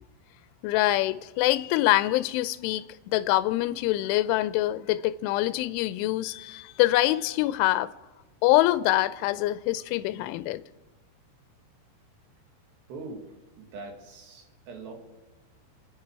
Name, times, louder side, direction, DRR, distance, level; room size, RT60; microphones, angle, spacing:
voice 1, 0.6-7.9 8.4-10.6, left 16 dB, 80° left, 3.0 m, -25 dB
voice 2, 12.9-13.3 13.6-14.9, right 3 dB, 60° right, 3.9 m, -42 dB
29.5 x 10.0 x 4.7 m
omnidirectional pair, 5.9 m